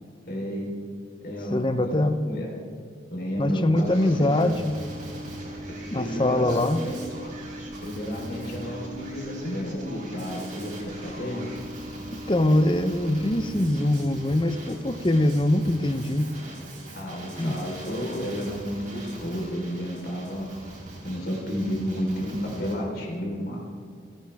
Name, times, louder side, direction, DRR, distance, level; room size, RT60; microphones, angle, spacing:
voice 1, 0.3-0.7 1.2-1.9 2.3-2.5 3.1-4.5 5.9-7.0 7.8-11.5 16.9-20.4 21.0-23.6, equal, 50° left, -2 dB, 4.1 m, -31 dB
voice 2, 1.5-2.2 3.4-4.8 5.9-6.8 12.1-16.3 17.4-17.5, left 1 dB, 25° left, 9 dB, 0.7 m, -23 dB
Male speech man speaking, 3.8-22.8, right 1 dB, 40° right, 4.7 m, -42 dB
sound 1, 4.2-14.2, right 1 dB, 5° right, 3.7 m, -41 dB
30.0 x 10.0 x 3.5 m, 2.3 s
head